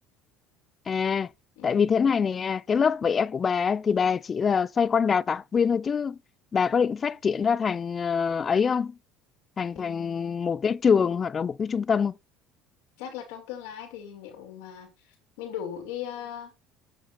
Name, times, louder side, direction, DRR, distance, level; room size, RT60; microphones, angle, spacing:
voice 1, 0.9-1.3 1.6-6.2 6.5-8.9 9.6-12.1, left 6 dB, 35° left, 0.5 m, -24 dB
voice 2, 1.6-1.9 9.7-10.4 13.0-16.5, left 9 dB, 80° left, 3.0 m, -39 dB
7.9 x 6.4 x 4.3 m
supercardioid pair, 85°, 0 cm